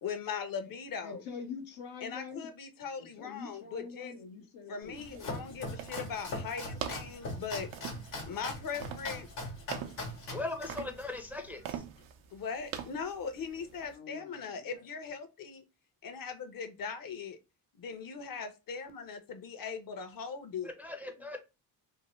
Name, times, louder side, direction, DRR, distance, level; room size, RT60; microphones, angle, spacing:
voice 1, 0.0-1.2 2.0-4.1 4.7-7.7 8.3-9.3 12.3-15.6 16.0-17.4 17.8-20.7, left 6 dB, 45° left, 0.8 m, -40 dB
voice 2, 1.0-2.5 3.0-5.3 13.3-14.8 21.2-21.3, left 6 dB, 75° left, 0.9 m, -46 dB
Domestic sounds home sounds, 4.8-11.8, left 2 dB, 90° left, 1.2 m, -41 dB
sound 1, 5.0-13.9, right 9 dB, 70° right, 0.6 m, -45 dB
voice 3, 10.3-11.6 20.6-21.4, left 2 dB, 5° right, 0.6 m, -39 dB
2.8 x 2.1 x 3.0 m
hypercardioid pair, 50°, 48 cm